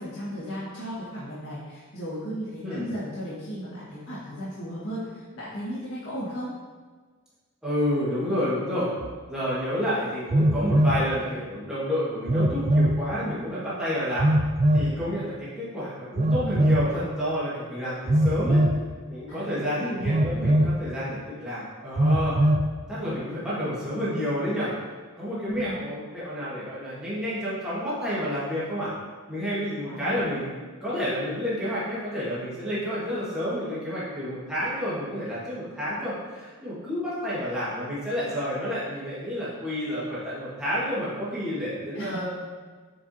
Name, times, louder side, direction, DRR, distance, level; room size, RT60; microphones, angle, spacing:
voice 1, 0.0-6.5 19.3-20.1 25.4-25.7 29.9-30.3 41.9-42.3, equal, 70° left, -10 dB, 1.7 m, -35 dB
voice 2, 7.6-8.9 9.3-14.3 14.7-18.6 19.1-22.4 22.9-24.7 25.2-28.9 29.3-30.5 30.8-42.3, equal, 5° right, -11 dB, 1.7 m, -30 dB
Telephone, 9.0-9.1 10.3-11.0 12.3-13.0 14.2-14.9 16.2-16.9 18.1-18.8 20.0-20.8 22.0-22.7, right 1 dB, 30° right, 0.3 m, -21 dB
7.8 x 4.7 x 2.8 m, 1.5 s
head